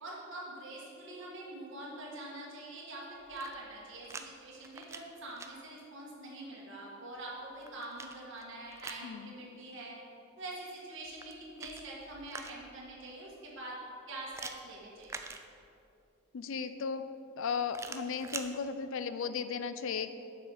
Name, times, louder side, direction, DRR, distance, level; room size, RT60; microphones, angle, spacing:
voice 1, 0.0-10.0 10.4-13.8 14.1-15.2, right 2 dB, 60° right, -4 dB, 1.7 m, -45 dB
sound 1, 3.2-4.3 4.6-5.5 7.2-9.1 11.1-12.8 14.3-15.9 17.7-18.5, right 4 dB, 15° right, 0.3 m, -46 dB
voice 2, 9.0-9.3 16.3-17.0 17.4-20.1, left 6 dB, 65° left, 11 dB, 0.4 m, -35 dB
6.9 x 6.1 x 4.9 m, 2.7 s
head